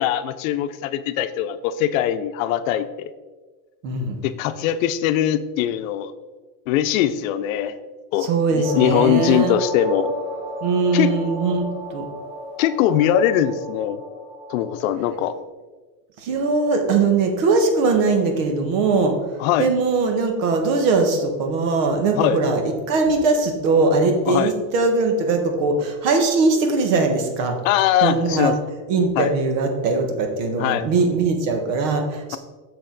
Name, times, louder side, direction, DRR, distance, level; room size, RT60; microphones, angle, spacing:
voice 1, 0.0-3.1 4.2-6.1 6.7-7.8 8.1-10.1 10.9-11.2 12.6-14.0 14.5-15.4 19.4-19.7 22.1-22.4 24.3-24.5 27.6-28.6 29.2-29.3 30.6-30.8, left 11 dB, 75° left, 12 dB, 0.7 m, -21 dB
voice 2, 3.8-4.2 8.2-9.6 10.6-12.0 16.2-19.1 19.6-27.6 28.0-28.5 28.9-32.4, right 3 dB, 70° right, 5 dB, 1.5 m, -20 dB
sound 1, 8.6-14.9, equal, 20° right, 1.6 m, -32 dB
6.8 x 6.5 x 4.0 m, 1.3 s
supercardioid pair, 155°, 40 cm